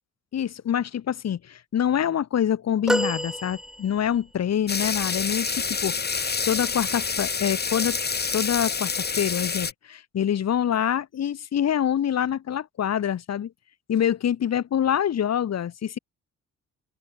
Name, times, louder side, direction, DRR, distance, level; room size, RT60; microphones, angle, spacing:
voice 1, 0.3-8.0 8.3-13.5 13.9-16.0, left 9 dB, 60° left, 3.0 m, -26 dB
sound 1, 2.9-4.3 6.7-6.9 8.2-8.3, equal, ahead, 0.8 m, -28 dB
sound 2, 4.7-9.7, left 5 dB, 35° left, 3.7 m, -27 dB
open air
cardioid pair, 90°, 30 cm